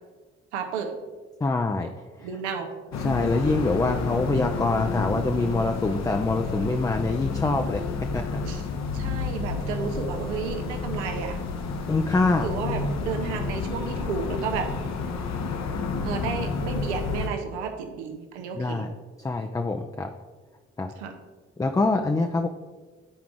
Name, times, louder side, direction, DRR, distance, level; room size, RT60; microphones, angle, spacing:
voice 1, 0.5-0.9 2.2-2.7 8.4-8.7 8.9-11.4 12.4-14.7 16.0-18.8 21.0-21.2, right 6 dB, 80° right, 5 dB, 0.8 m, -32 dB
voice 2, 1.4-1.9 2.2-2.3 3.0-7.8 8.1-8.4 11.9-12.5 18.5-18.9 19.2-20.1 20.8-20.9 21.6-22.5, left 3 dB, 10° left, 5 dB, 0.4 m, -25 dB
sound 1, 2.9-17.3, left 4 dB, 50° left, 0.8 m, -30 dB
9.1 x 4.7 x 3.6 m, 1.4 s
figure-of-eight pair, 40°, 34 cm